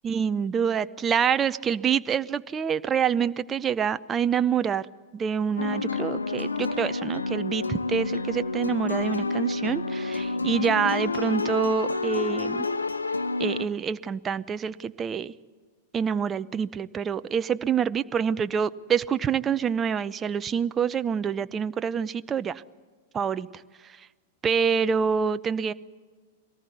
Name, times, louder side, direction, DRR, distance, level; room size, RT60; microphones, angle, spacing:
voice 1, 0.0-4.9 5.1-12.7 13.4-15.3 15.9-22.6 23.1-24.1 24.4-25.7, right 7 dB, 20° right, 14 dB, 0.7 m, -26 dB
sound 1, 5.6-13.7, left 3 dB, 80° left, 1.0 m, -29 dB
23.0 x 18.5 x 9.5 m, 1.5 s
figure-of-eight pair, 95°, 0 cm